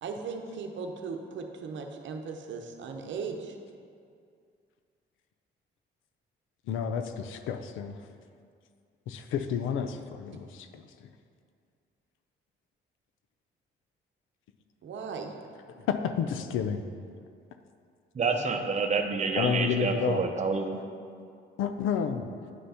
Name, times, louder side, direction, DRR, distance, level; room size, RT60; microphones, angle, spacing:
voice 1, 0.0-3.5 10.3-10.5 14.8-15.3 18.3-18.5, right 5 dB, 70° right, 4 dB, 0.8 m, -38 dB
voice 2, 6.7-8.0 9.1-10.9 15.9-16.8 19.4-20.2 21.6-22.3, left 7 dB, 85° left, 8 dB, 0.5 m, -30 dB
voice 3, 18.1-20.8, right 4 dB, 35° right, 4 dB, 0.7 m, -28 dB
9.4 x 3.4 x 5.6 m, 2.3 s
cardioid pair, 90°, 20 cm